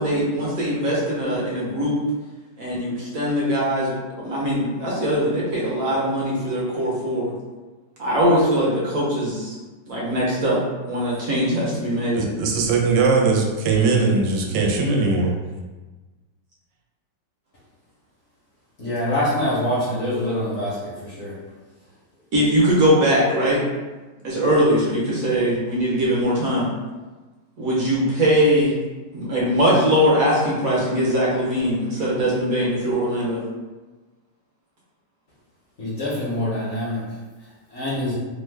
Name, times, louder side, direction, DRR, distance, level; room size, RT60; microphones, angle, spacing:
voice 1, 0.0-2.0 2.6-7.3 8.0-9.5 9.9-10.6 10.9-12.2 22.3-23.6 24.2-26.7 27.6-28.7 29.1-33.4, equal, 60° right, -6 dB, 1.0 m, -21 dB
voice 2, 12.1-15.4, right 4 dB, 80° right, 1 dB, 1.2 m, -20 dB
voice 3, 18.8-21.3 35.8-37.0 37.7-38.1, left 1 dB, 50° left, -8 dB, 0.9 m, -25 dB
3.1 x 2.1 x 3.3 m, 1.2 s
omnidirectional pair, 1.9 m